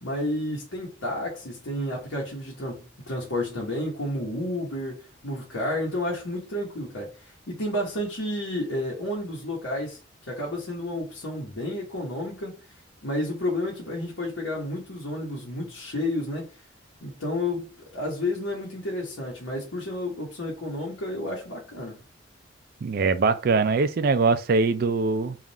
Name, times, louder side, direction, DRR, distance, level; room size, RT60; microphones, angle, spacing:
voice 1, 0.0-10.0 10.3-12.6 13.0-16.5 17.0-17.7 17.9-22.0, left 1 dB, 85° left, 1.2 m, -31 dB
voice 2, 22.8-25.4, right 4 dB, 50° right, 0.4 m, -22 dB
3.7 x 2.5 x 4.1 m
head